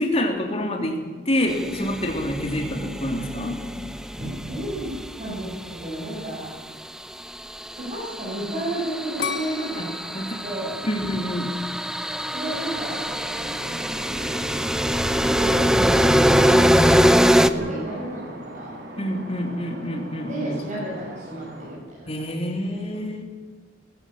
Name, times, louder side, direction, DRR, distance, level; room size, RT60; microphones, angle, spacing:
voice 1, 0.0-3.6 10.1-10.3 10.8-11.5 19.0-20.6 22.1-23.2, left 1 dB, 35° left, 2 dB, 3.3 m, -27 dB
sound 1, 1.5-5.8 7.3-17.5, equal, 5° right, 0.8 m, -23 dB
voice 2, 4.2-4.9 5.2-6.5 7.7-10.8 12.3-13.1 15.2-18.7 20.2-22.3 22.7-22.8, right 1 dB, 40° right, -7 dB, 7.3 m, -32 dB
sound 2, 9.2-12.1 12.6-13.1, left 5 dB, 75° left, 2.4 m, -34 dB
sound 3, 12.5-21.8, right 1 dB, 60° right, 3.7 m, -40 dB
20.5 x 15.5 x 8.9 m, 1.4 s
head